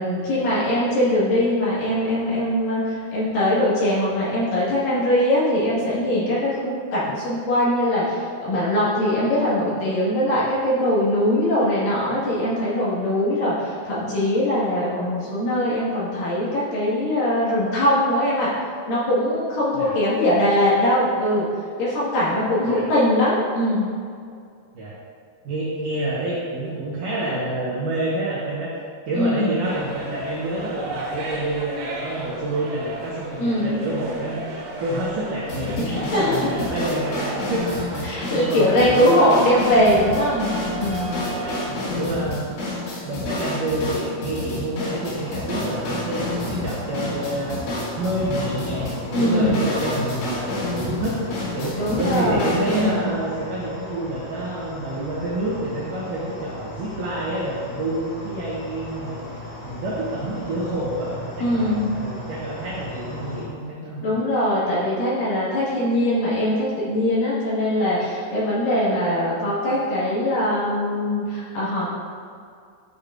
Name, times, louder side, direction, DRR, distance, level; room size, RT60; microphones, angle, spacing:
voice 1, 0.0-18.5 18.9-21.4 21.8-23.9 29.1-29.6 33.4-33.8 35.8-36.5 38.0-41.2 49.1-49.6 51.8-53.1 61.4-61.9 64.0-71.9, left 1 dB, 60° left, -8 dB, 2.9 m, -21 dB
voice 2, 25.4-28.7 29.1-39.4 41.1-42.8 43.0-47.6 47.9-59.2 59.6-64.2, right 1 dB, 80° right, -6 dB, 1.9 m, -28 dB
sound 1, 29.6-41.7, right 2 dB, 60° right, 2.9 m, -34 dB
sound 2, 35.5-53.0, left 2 dB, 80° left, 4.4 m, -30 dB
sound 3, 45.0-63.4, left 1 dB, 40° left, 2.3 m, -37 dB
12.0 x 6.6 x 2.5 m, 2.3 s
omnidirectional pair, 5.3 m